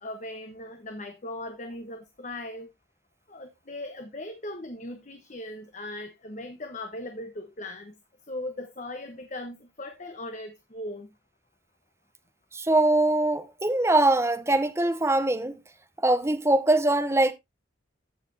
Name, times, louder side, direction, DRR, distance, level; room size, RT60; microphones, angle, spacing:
voice 1, 0.0-2.7 3.3-7.9 8.3-11.1, left 1 dB, 40° left, 1.0 m, -38 dB
voice 2, 12.5-15.6 16.0-17.3, right 2 dB, 15° right, 0.8 m, -22 dB
15.0 x 5.8 x 2.7 m
head